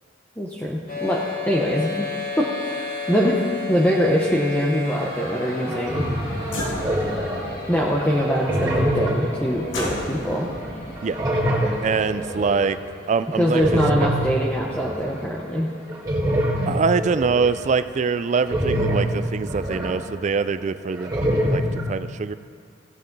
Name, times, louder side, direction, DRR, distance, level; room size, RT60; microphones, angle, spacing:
voice 1, 0.4-1.2 1.5-2.1 2.4-3.4 3.7-6.0 7.7-10.5 13.4-15.7, equal, 10° left, -4 dB, 0.8 m, -23 dB
sound 1, 0.9-18.7, left 3 dB, 50° left, 3.4 m, -36 dB
sound 2, 5.1-5.2 5.6-7.6 8.0-10.7 11.0-12.7 13.4-15.2 15.9-20.6 20.8-21.8, equal, 20° right, 2.0 m, -25 dB
sound 3, 6.4-13.3, left 1 dB, 70° left, 1.8 m, -35 dB
voice 2, 11.8-12.8 13.1-14.1 16.7-22.3, right 5 dB, 35° right, 13 dB, 0.3 m, -24 dB
16.5 x 8.4 x 3.9 m, 2.3 s
head